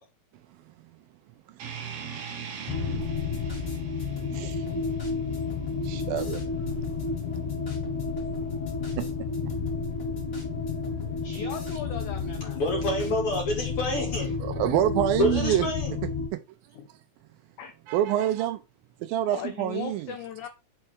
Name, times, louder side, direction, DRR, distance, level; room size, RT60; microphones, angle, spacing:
sound 1, 1.6-6.6, right 7 dB, 60° right, 1.6 m, -41 dB
sound 2, 2.7-16.3, left 4 dB, 65° left, 2.4 m, -31 dB
sound 3, 3.0-13.7, left 2 dB, 30° left, 1.8 m, -47 dB
voice 1, 4.3-4.7 5.8-6.7 9.0-9.1 11.0-11.5 14.4-15.7 16.3-16.4 17.9-18.6 19.0-20.1, right 12 dB, 80° right, 2.2 m, -27 dB
voice 2, 11.2-12.6 16.7-16.9 17.6-17.7 19.3-20.5, left 9 dB, 80° left, 1.7 m, -38 dB
voice 3, 12.5-14.5 15.2-15.9, left 1 dB, 45° left, 2.1 m, -28 dB
5.7 x 4.3 x 4.6 m
omnidirectional pair, 4.4 m